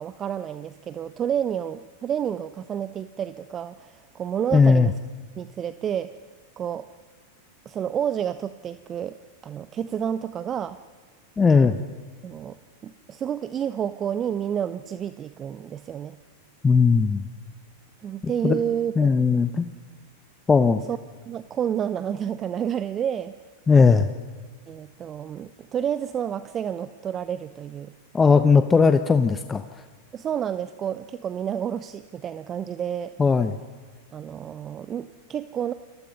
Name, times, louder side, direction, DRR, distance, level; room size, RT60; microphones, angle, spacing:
voice 1, 0.0-4.9 5.4-6.2 6.6-6.9 7.6-9.2 9.4-10.8 11.6-11.8 12.2-12.6 12.8-16.2 18.0-19.1 20.9-21.0 21.2-23.3 24.7-27.9 30.1-33.1 34.1-35.7, right 9 dB, 30° right, 14 dB, 0.8 m, -30 dB
voice 2, 4.5-4.9 11.4-11.7 16.6-17.2 18.4-18.6 19.0-19.7 20.5-20.8 23.7-24.1 28.1-29.6 33.2-33.5, left 5 dB, 15° left, 10 dB, 1.1 m, -18 dB
29.0 x 22.5 x 5.4 m, 1.5 s
figure-of-eight pair, 90°, 0 cm